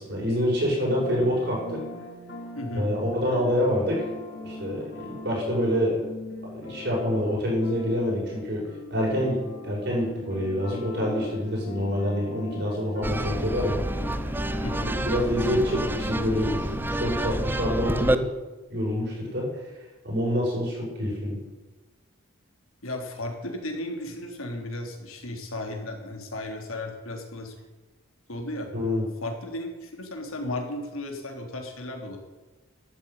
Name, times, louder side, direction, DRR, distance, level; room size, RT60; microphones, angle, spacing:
voice 1, 0.0-1.8 2.7-4.1 4.4-6.0 6.5-8.6 8.9-13.8 15.0-18.3 18.7-19.5 20.0-21.4 28.7-29.0, equal, 50° right, -4 dB, 7.0 m, -26 dB
sound 1, 0.7-16.8, left 1 dB, 55° left, 3.2 m, -41 dB
voice 2, 2.5-2.9 13.1-13.5 14.6-14.9 22.8-27.5 28.3-28.7 29.2-32.2, left 1 dB, 80° left, 2 dB, 3.3 m, -35 dB
sound 2, 13.0-18.2, right 1 dB, 10° right, 0.6 m, -28 dB
12.5 x 9.7 x 9.5 m, 1.2 s
head